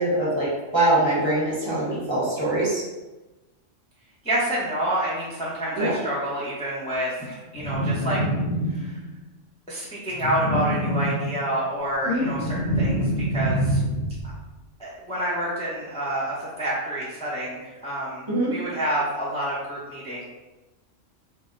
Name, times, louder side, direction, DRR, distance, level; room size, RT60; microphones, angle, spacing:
voice 1, 0.0-2.8 5.8-6.0 12.0-12.2 18.3-18.5, right 1 dB, 25° right, -8 dB, 1.0 m, -23 dB
voice 2, 4.2-8.2 8.7-9.0 9.7-13.8 14.8-20.2, right 1 dB, 5° left, -8 dB, 0.7 m, -28 dB
sound 1, 7.5-9.1 10.1-11.6 12.0-14.3, equal, 40° left, 0.9 m, -26 dB
4.1 x 2.1 x 3.7 m, 1.1 s
omnidirectional pair, 1.3 m